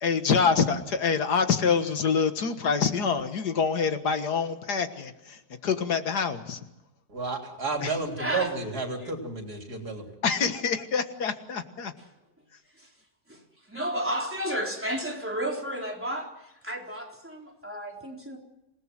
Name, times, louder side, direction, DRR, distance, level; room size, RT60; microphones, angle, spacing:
voice 1, 0.0-6.6 7.8-7.9 10.2-11.9, left 6 dB, 75° left, 9 dB, 2.1 m, -26 dB
voice 2, 7.1-10.1, right 3 dB, 65° right, 3 dB, 4.0 m, -32 dB
voice 3, 8.2-8.5 9.0-9.1 12.8-12.9 13.3-13.4 13.7-18.4, equal, 5° right, 0 dB, 4.1 m, -32 dB
27.0 x 18.5 x 7.7 m, 0.90 s
omnidirectional pair, 1.8 m